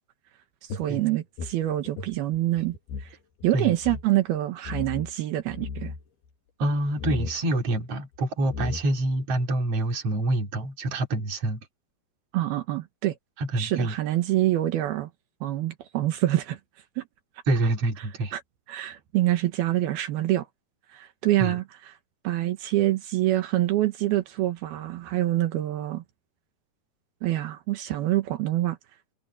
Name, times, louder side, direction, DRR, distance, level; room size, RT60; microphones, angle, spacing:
voice 1, 0.6-3.2 3.4-5.9 12.3-13.2 13.6-15.1 15.4-16.6 17.0-17.1 18.0-18.4 18.7-20.5 20.9-22.0 22.2-26.0 27.2-28.8, right 15 dB, 80° right, 3.1 m, -26 dB
sound 1, 0.7-3.1 3.4-3.5 3.8-4.1 4.6-5.1 5.5-6.0 7.0-7.4 8.1-8.2 8.5-9.1, left 4 dB, 85° left, 4.3 m, -35 dB
voice 2, 6.6-11.6 13.4-13.9 17.5-18.3 21.4-21.6, right 1 dB, 40° right, 3.8 m, -26 dB
omnidirectional pair, 4.4 m